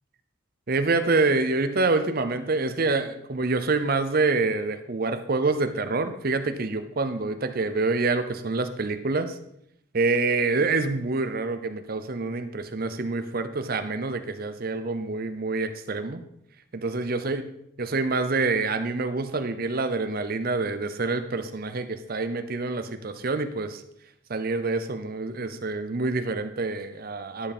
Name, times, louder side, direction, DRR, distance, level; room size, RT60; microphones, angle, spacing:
voice 1, 0.7-9.4 9.9-16.2 16.7-17.4 17.8-23.8 24.3-27.5, right 3 dB, 45° right, 10 dB, 0.7 m, -26 dB
11.0 x 5.5 x 4.3 m, 0.76 s
head